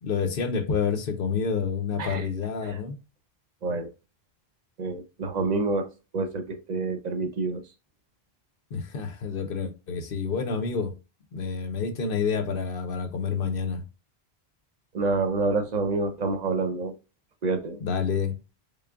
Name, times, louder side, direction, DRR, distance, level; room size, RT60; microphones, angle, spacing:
voice 1, 0.0-3.0 8.7-10.9 11.3-13.8 17.8-18.4, left 5 dB, 60° left, 0.9 m, -28 dB
voice 2, 4.8-7.6 14.9-16.9 17.4-17.8, right 3 dB, 45° right, 0.8 m, -28 dB
3.7 x 3.7 x 2.3 m
omnidirectional pair, 1.1 m